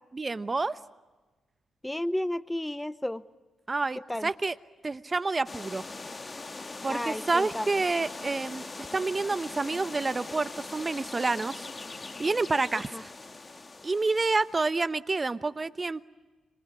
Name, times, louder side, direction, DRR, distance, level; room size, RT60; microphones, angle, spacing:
voice 1, 0.1-0.8 3.7-4.5 4.8-5.9 6.8-8.7 8.9-11.7 12.2-13.1 13.8-16.0, right 3 dB, 35° right, 14 dB, 1.0 m, -28 dB
voice 2, 1.8-3.2 4.1-4.3 6.9-7.8 12.9-13.0, left 1 dB, 10° left, 16 dB, 0.8 m, -32 dB
sound 1, 5.5-14.7, left 3 dB, 35° left, 1.8 m, -41 dB
26.5 x 26.0 x 8.5 m, 1.2 s
hypercardioid pair, 45°, 0 cm